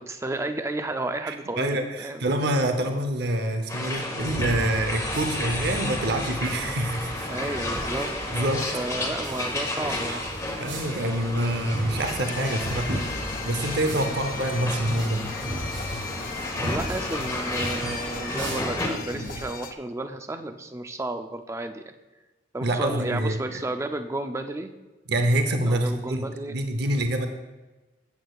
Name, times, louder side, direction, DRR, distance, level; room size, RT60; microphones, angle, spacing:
voice 1, 0.0-2.3 7.2-10.2 14.0-14.2 16.6-21.9 22.5-24.7 25.6-26.6, right 2 dB, 15° right, 7 dB, 0.5 m, -32 dB
voice 2, 1.2-7.3 8.3-8.7 9.8-10.0 10.6-15.2 22.6-23.6 25.1-27.3, right 1 dB, 60° right, 6 dB, 0.7 m, -26 dB
sound 1, 3.7-18.9, left 1 dB, 15° left, 1.2 m, -32 dB
sound 2, 4.2-19.5, equal, 85° right, 3.5 m, -36 dB
sound 3, 12.0-19.7, left 5 dB, 50° left, 0.5 m, -38 dB
14.0 x 8.3 x 2.4 m, 1.2 s
head